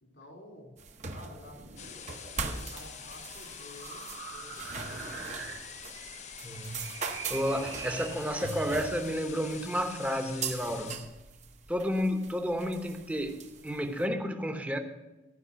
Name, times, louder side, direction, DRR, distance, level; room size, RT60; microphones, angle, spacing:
voice 1, 0.0-0.7 1.1-1.6 2.3-5.5 10.7-11.0, left 1 dB, 85° left, 1 dB, 3.0 m, -51 dB
sound 1, 0.8-14.0, right 4 dB, 40° right, 0.8 m, -41 dB
sound 2, 1.4-8.8, right 6 dB, 90° right, 1.7 m, -46 dB
sound 3, 1.8-11.0, left 7 dB, 40° left, 0.6 m, -46 dB
voice 2, 6.4-11.0 11.7-14.8, equal, 10° right, 5 dB, 0.9 m, -31 dB
14.0 x 5.3 x 6.9 m, 1.1 s
head